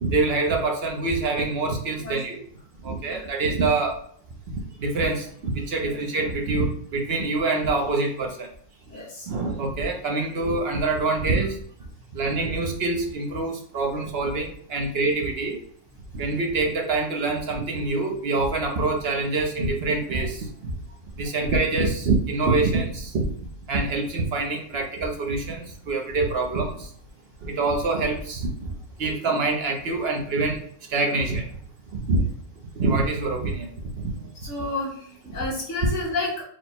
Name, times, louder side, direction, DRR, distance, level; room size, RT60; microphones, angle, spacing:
voice 1, 0.0-2.4 2.8-4.0 4.5-8.5 9.3-11.6 12.1-15.6 16.1-20.7 21.2-23.3 23.7-26.9 27.4-28.5 29.0-30.6 30.9-31.5 31.9-32.2 32.7-33.7 34.0-34.1, right 3 dB, 60° right, 2 dB, 1.0 m, -25 dB
voice 2, 8.9-9.3 34.4-36.4, left 3 dB, 80° left, -3 dB, 1.9 m, -31 dB
4.6 x 2.2 x 4.3 m, 0.62 s
omnidirectional pair, 1.2 m